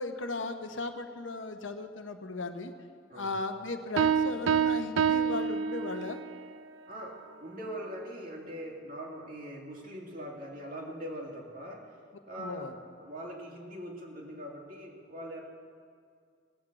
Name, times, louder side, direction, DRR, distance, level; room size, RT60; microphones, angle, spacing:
voice 1, 0.0-2.7 3.1-6.2 12.4-12.7, left 3 dB, 85° left, 7 dB, 0.8 m, -36 dB
sound 1, 4.0-6.4, right 7 dB, 80° right, 0.4 m, -27 dB
voice 2, 6.9-12.0 12.3-15.4, equal, 50° right, -1 dB, 2.1 m, -42 dB
18.0 x 6.1 x 7.7 m, 2.2 s
head